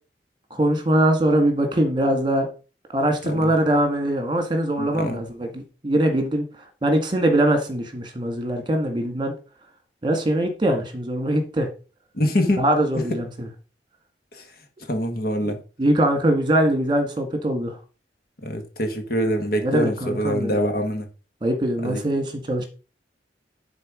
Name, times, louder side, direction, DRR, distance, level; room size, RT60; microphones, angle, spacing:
voice 1, 0.5-2.5 2.9-6.4 6.8-9.3 10.0-11.7 12.6-13.5 15.5-17.8 19.6-20.6 21.4-22.6, right 1 dB, 25° right, 1.9 m, -22 dB
voice 2, 4.8-5.2 12.1-12.6 12.9-13.2 14.3-14.4 14.9-15.6 18.4-21.1 21.8-22.0, equal, 55° left, 1.7 m, -24 dB
10.5 x 4.5 x 5.1 m
head